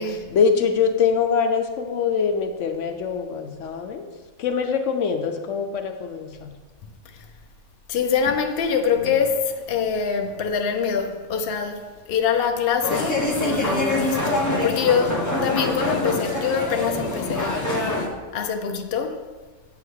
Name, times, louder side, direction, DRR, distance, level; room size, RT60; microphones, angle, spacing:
voice 1, 0.0-4.1 4.4-6.5, left 6 dB, 80° left, 1.0 m, -23 dB
voice 2, 7.9-17.6 18.3-19.2, left 6 dB, 60° left, 0.8 m, -24 dB
sound 1, 12.8-18.1, left 1 dB, 15° left, 0.9 m, -24 dB
8.3 x 3.7 x 6.3 m
omnidirectional pair, 1.3 m